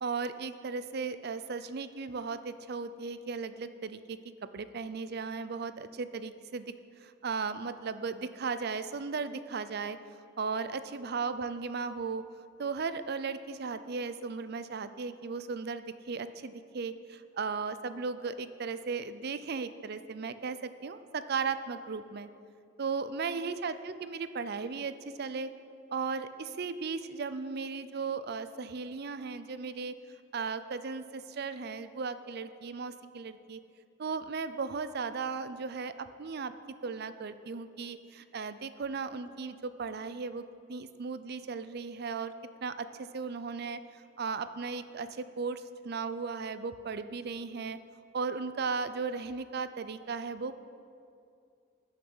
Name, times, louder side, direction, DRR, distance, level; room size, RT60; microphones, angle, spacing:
voice 1, 0.0-4.2 4.5-6.7 7.0-10.0 10.4-12.2 12.6-22.3 22.8-25.5 25.9-30.0 30.3-33.6 34.0-36.5 36.8-40.4 40.7-42.3 42.6-43.8 44.2-47.8 48.1-50.5, right 5 dB, 55° right, 12 dB, 0.5 m, -36 dB
19.5 x 6.5 x 5.5 m, 2.5 s
head